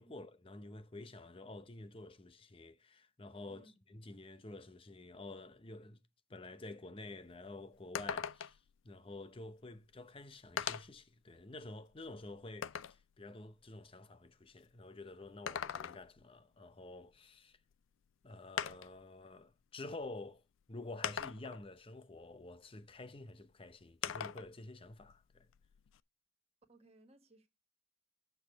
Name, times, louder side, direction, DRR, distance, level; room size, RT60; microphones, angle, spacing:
voice 1, 0.0-6.0 6.3-17.6 18.2-25.5, left 2 dB, 30° left, 0.7 m, -50 dB
voice 2, 3.5-3.8 26.7-27.5, right 2 dB, 30° right, 1.4 m, -64 dB
sound 1, 7.0-7.1 7.4-7.5 7.9-8.7 9.8-9.9 10.6-11.0 11.6-13.0 15.2-16.2 17.7-17.8 18.6-19.0 20.0-20.1 21.0-21.7 24.0-24.5 24.9-26.0, left 9 dB, 80° left, 0.4 m, -41 dB
8.5 x 7.1 x 4.5 m
head